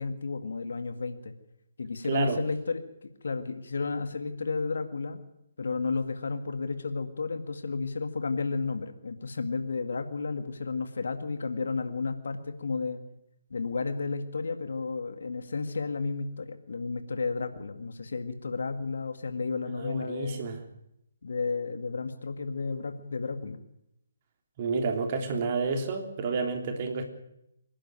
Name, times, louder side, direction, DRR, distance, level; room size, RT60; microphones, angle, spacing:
voice 1, 0.0-1.3 1.8-5.2 5.6-13.0 13.5-20.5 21.2-23.6, left 4 dB, 60° left, 8 dB, 2.0 m, -32 dB
voice 2, 2.1-2.4 19.8-20.6 24.6-27.0, right 4 dB, 35° right, 4 dB, 3.4 m, -30 dB
25.5 x 11.5 x 9.2 m, 0.82 s
figure-of-eight pair, 135°, 0 cm